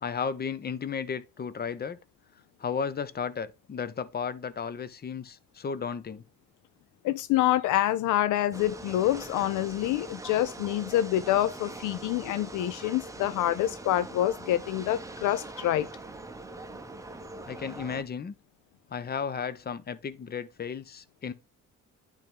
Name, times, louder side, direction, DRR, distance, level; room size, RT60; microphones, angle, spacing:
voice 1, 0.0-2.0 2.6-6.2 17.5-18.3 18.9-21.3, left 6 dB, 30° left, 0.7 m, -34 dB
voice 2, 7.0-15.9, left 13 dB, 80° left, 0.4 m, -27 dB
sound 1, 8.5-18.0, right 2 dB, 10° right, 0.7 m, -42 dB
10.5 x 3.5 x 3.6 m
cardioid pair, 90°, 30 cm